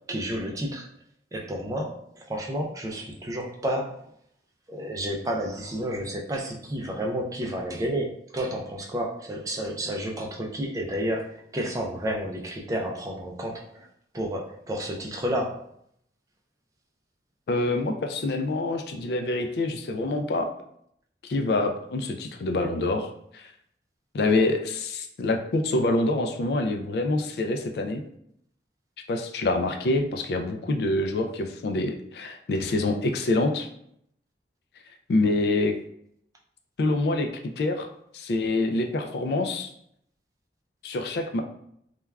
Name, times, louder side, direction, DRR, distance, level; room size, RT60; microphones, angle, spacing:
voice 1, 0.1-0.9 1.3-2.0 2.3-4.0 4.7-13.9 14.1-15.6, equal, 20° right, -1 dB, 0.3 m, -31 dB
voice 2, 17.5-20.5 21.2-23.1 23.3-23.5 24.1-28.0 29.1-33.7 35.1-35.8 36.8-37.3 37.6-37.9 38.1-39.7 40.8-41.4, left 2 dB, 65° left, 5 dB, 0.3 m, -26 dB
3.3 x 2.2 x 2.2 m, 0.70 s
head